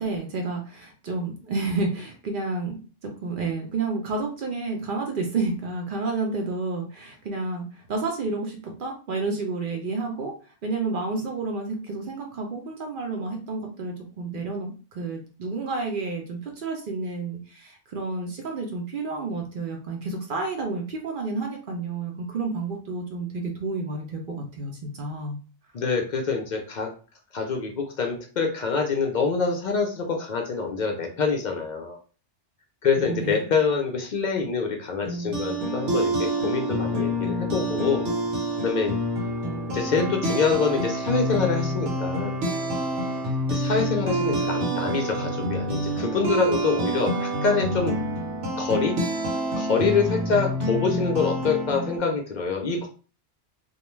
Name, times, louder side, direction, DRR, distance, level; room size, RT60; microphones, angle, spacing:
voice 1, 0.0-10.3 10.6-25.4 33.0-33.4, right 3 dB, 60° right, 2 dB, 0.6 m, -30 dB
voice 2, 25.7-26.9 27.3-32.0 32.8-38.0 38.6-39.0 39.7-42.3 43.5-48.0 48.6-49.0 49.6-52.9, left 5 dB, 60° left, 2 dB, 0.4 m, -25 dB
sound 1, 35.0-52.0, right 1 dB, 75° right, 1.0 m, -27 dB
2.4 x 2.2 x 3.0 m, 0.37 s
omnidirectional pair, 1.2 m